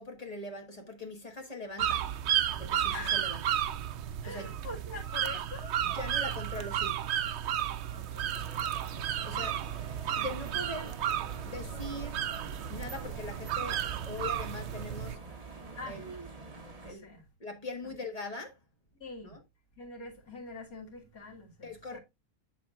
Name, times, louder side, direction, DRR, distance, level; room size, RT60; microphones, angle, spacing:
voice 1, 0.0-2.1 2.6-3.4 4.3-4.5 5.8-7.0 9.2-9.6 10.1-11.0 11.4-12.2 12.7-15.2 15.9-16.3 16.8-17.1 17.4-18.6 19.2-19.4 21.6-22.0, left 2 dB, 30° left, 1.3 m, -41 dB
sound 1, 1.8-15.1, right 10 dB, 65° right, 0.7 m, -33 dB
voice 2, 2.9-3.3 4.2-5.7 7.9-8.3 15.8-16.0 16.8-17.2 19.0-19.4 19.8-22.0, left 3 dB, 75° left, 2.4 m, -44 dB
sound 2, 8.3-16.9, right 3 dB, 25° right, 1.2 m, -47 dB
7.8 x 7.0 x 2.4 m
omnidirectional pair, 1.5 m